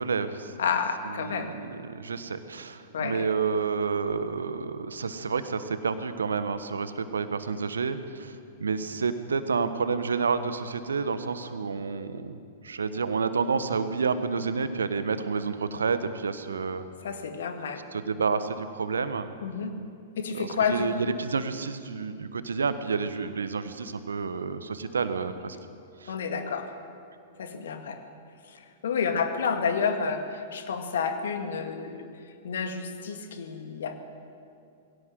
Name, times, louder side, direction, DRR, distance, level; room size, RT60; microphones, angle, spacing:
voice 1, 0.0-0.5 1.0-12.4 12.6-16.9 17.9-19.3 20.3-25.6 26.0-26.2, right 5 dB, 75° right, 11 dB, 1.3 m, -29 dB
voice 2, 0.6-1.5 2.9-3.3 17.0-17.8 19.4-19.7 20.2-21.1 26.1-26.7 27.4-28.0 28.5-28.6 28.8-32.0 32.4-34.0, left 6 dB, 65° left, 6 dB, 2.1 m, -30 dB
20.5 x 17.0 x 7.6 m, 2.5 s
figure-of-eight pair, 105°, 0 cm